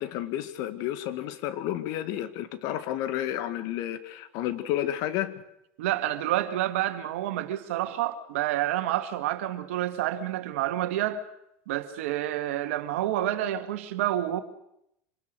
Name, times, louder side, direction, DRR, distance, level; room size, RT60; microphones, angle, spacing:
voice 1, 0.0-5.3, left 12 dB, 65° left, 12 dB, 1.9 m, -31 dB
voice 2, 5.8-11.2 11.7-14.4, right 13 dB, 80° right, 9 dB, 1.9 m, -28 dB
26.0 x 19.5 x 6.5 m, 0.78 s
supercardioid pair, 100°, 7 cm